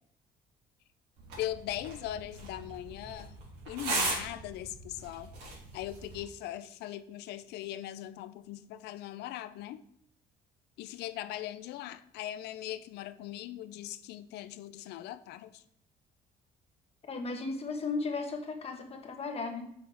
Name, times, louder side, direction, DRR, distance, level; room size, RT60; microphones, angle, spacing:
sound 1, 1.2-6.2, right 2 dB, 85° right, 3.0 m, -38 dB
voice 1, 1.4-3.4 3.7-5.3 5.7-9.8 10.8-15.6, left 13 dB, 80° left, 14 dB, 0.5 m, -40 dB
voice 2, 17.1-19.7, left 3 dB, 35° left, 4 dB, 1.2 m, -35 dB
5.9 x 4.8 x 4.6 m, 0.72 s
cardioid pair, 110°, 17 cm